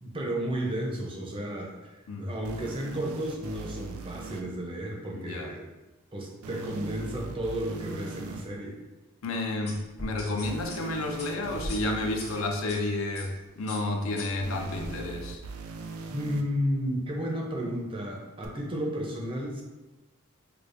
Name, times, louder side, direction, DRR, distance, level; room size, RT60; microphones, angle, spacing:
voice 1, 0.0-5.7 6.1-8.8 16.1-19.6, equal, 25° right, -1 dB, 0.5 m, -33 dB
sound 1, 2.4-4.4 6.4-8.4 10.4-12.4 14.4-16.4 18.4-18.5, right 4 dB, 80° right, 0.4 m, -40 dB
voice 2, 5.1-5.5 9.2-15.4, left 2 dB, 70° left, 3 dB, 0.5 m, -31 dB
sound 2, 9.7-12.8 13.1-13.4 13.7-14.9, left 1 dB, 50° left, 0.9 m, -41 dB
4.8 x 2.3 x 2.5 m, 1.1 s
head